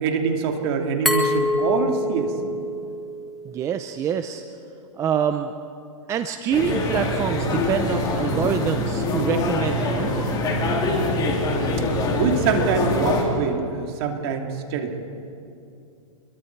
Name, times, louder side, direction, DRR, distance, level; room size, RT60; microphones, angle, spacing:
voice 1, 0.0-2.3 12.2-14.9, right 6 dB, 45° right, 3 dB, 2.7 m, -24 dB
Glass, 1.1-3.8, left 1 dB, ahead, 1.8 m, -26 dB
voice 2, 3.4-4.4 4.9-5.5 6.1-10.3, right 8 dB, 15° right, 8 dB, 0.6 m, -26 dB
sound 1, 6.5-13.2, left 2 dB, 20° left, 3.2 m, -24 dB
27.5 x 22.5 x 4.7 m, 2.6 s
hypercardioid pair, 145°, 19 cm